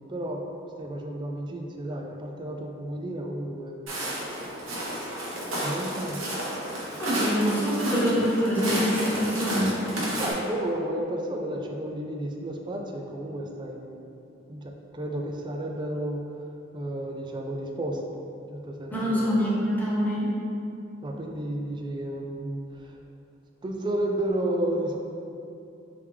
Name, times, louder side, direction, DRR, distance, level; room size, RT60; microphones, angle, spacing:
voice 1, 0.1-0.4 0.8-3.8 5.6-6.2 10.2-14.1 14.5-16.2 16.7-18.0 18.5-19.4 21.0-23.0 23.6-25.0, right 1 dB, 25° right, 2 dB, 0.3 m, -32 dB
Walk footsteps, 3.9-10.3, right 1 dB, 90° right, 0.9 m, -31 dB
voice 2, 7.0-9.7 18.9-20.3, equal, 10° left, -8 dB, 0.8 m, -25 dB
3.4 x 3.2 x 3.3 m, 2.7 s
head